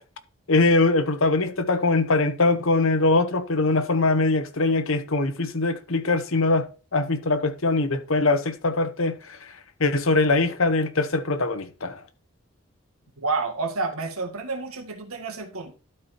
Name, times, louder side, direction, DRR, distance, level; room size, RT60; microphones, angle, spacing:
voice 1, 0.5-9.5 9.8-12.0, left 3 dB, 70° left, 1.0 m, -22 dB
voice 2, 13.2-15.7, right 3 dB, 90° right, 1.8 m, -29 dB
12.0 x 4.6 x 4.3 m
head